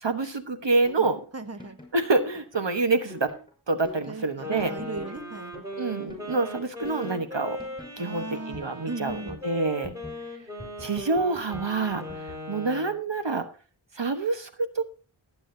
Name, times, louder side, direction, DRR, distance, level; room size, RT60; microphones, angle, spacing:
voice 1, 0.0-1.2 1.9-3.3 3.7-4.7 5.8-7.6 8.0-9.9 10.8-12.0 12.5-13.5 13.9-14.8, right 3 dB, 65° right, 8 dB, 1.3 m, -27 dB
sound 1, 0.9-12.4, left 2 dB, 10° left, 5.9 m, -45 dB
voice 2, 1.3-1.8 4.1-5.5 8.0-8.6 8.9-9.4, right 3 dB, 30° right, 9 dB, 1.4 m, -36 dB
Wind instrument woodwind instrument, 4.4-13.0, equal, 5° right, 5.2 m, -39 dB
19.0 x 8.7 x 2.7 m, 0.37 s
wide cardioid pair, 40°, 48 cm